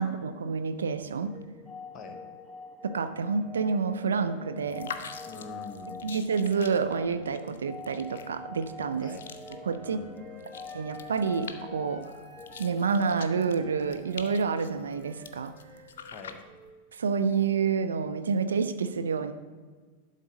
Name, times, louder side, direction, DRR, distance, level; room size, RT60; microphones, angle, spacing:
voice 1, 0.0-1.4 2.8-4.9 6.0-9.1 9.6-10.0 10.7-12.1 12.6-15.5 16.9-19.3, right 5 dB, 70° right, 10 dB, 0.5 m, -28 dB
sound 1, 1.3-14.0, left 3 dB, 15° left, 0.5 m, -46 dB
sound 2, 4.6-16.7, left 6 dB, 60° left, 0.6 m, -47 dB
voice 2, 5.2-6.1 9.0-9.2 9.8-10.5 16.1-16.4, left 4 dB, 30° left, 7 dB, 1.2 m, -45 dB
Wind instrument woodwind instrument, 9.2-12.7 13.1-16.8, right 2 dB, 20° right, 2.1 m, -51 dB
11.5 x 3.9 x 6.2 m, 1.5 s
figure-of-eight pair, 90°, 0 cm